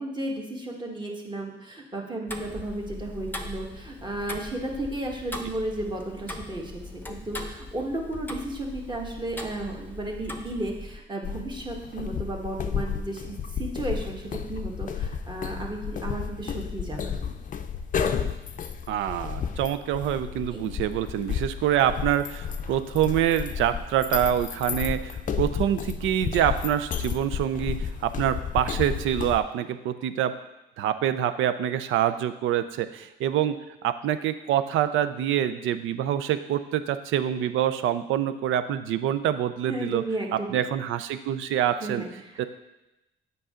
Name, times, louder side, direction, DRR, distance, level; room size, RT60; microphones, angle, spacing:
voice 1, 0.0-17.3 20.5-20.7 39.7-40.6 41.8-42.5, right 1 dB, 25° right, 0 dB, 1.4 m, -34 dB
Tick-tock, 2.3-11.0, left 1 dB, 10° left, 0.8 m, -40 dB
sound 1, 11.2-29.4, left 7 dB, 40° left, 0.5 m, -32 dB
voice 2, 18.9-30.4 30.8-33.6 33.8-40.0 40.3-42.0 42.4-42.5, right 10 dB, 85° right, 12 dB, 0.5 m, -26 dB
7.8 x 5.4 x 3.7 m, 0.94 s
cardioid pair, 90°, 20 cm